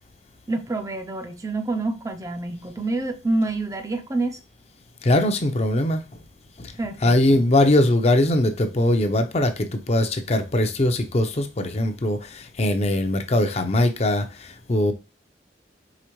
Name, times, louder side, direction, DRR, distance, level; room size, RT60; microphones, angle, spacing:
voice 1, 0.5-4.4 6.8-7.4, right 2 dB, 20° right, 0.4 m, -27 dB
voice 2, 5.0-6.0 6.6-6.7 7.0-14.9, left 1 dB, 35° left, 0.6 m, -21 dB
4.9 x 3.5 x 3.0 m
head